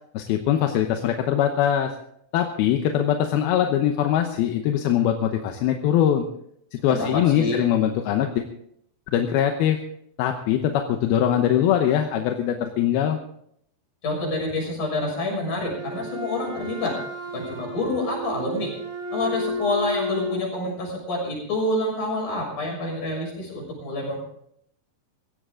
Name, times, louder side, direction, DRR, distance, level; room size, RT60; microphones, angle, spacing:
voice 1, 0.1-1.9 2.3-6.3 6.8-8.5 9.1-9.8 10.2-13.2, left 10 dB, 75° left, 5 dB, 2.7 m, -22 dB
voice 2, 6.9-7.6 14.0-17.0 17.3-18.7 19.1-24.2, left 2 dB, 50° left, -1 dB, 8.0 m, -27 dB
Wind instrument woodwind instrument, 15.6-20.5, left 1 dB, 55° right, 0.9 m, -32 dB
17.0 x 15.5 x 3.8 m, 0.70 s
omnidirectional pair, 4.8 m